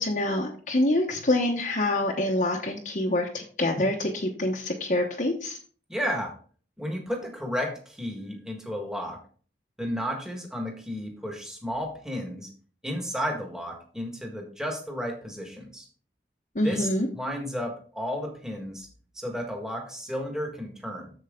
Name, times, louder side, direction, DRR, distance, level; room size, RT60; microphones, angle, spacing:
voice 1, 0.0-5.6 16.5-17.1, left 1 dB, 45° left, -1 dB, 1.0 m, -26 dB
voice 2, 5.9-6.3 6.8-9.2 9.8-12.5 12.8-15.8 16.6-18.9 19.1-21.1, equal, 5° right, 1 dB, 1.6 m, -33 dB
7.7 x 7.2 x 3.7 m, 0.43 s
head